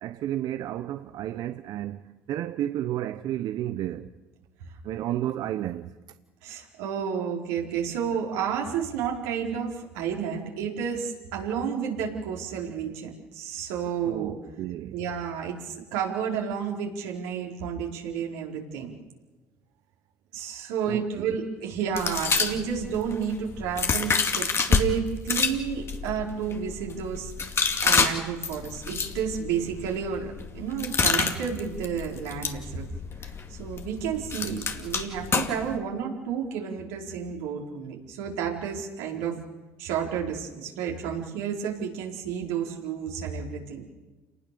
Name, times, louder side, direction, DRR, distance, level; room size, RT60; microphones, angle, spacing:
voice 1, 0.0-4.1 4.8-5.9 14.0-15.0 20.9-21.4 34.4-34.6, right 12 dB, 60° right, 0.9 m, -32 dB
voice 2, 6.4-14.4 14.9-18.9 20.3-32.9 33.2-39.4 39.8-43.9, right 7 dB, 80° right, 4.6 m, -31 dB
sound 1, 22.0-24.8 25.2-35.8, left 5 dB, 35° left, 2.3 m, -28 dB
28.5 x 19.5 x 6.9 m
hypercardioid pair, 75°, 8 cm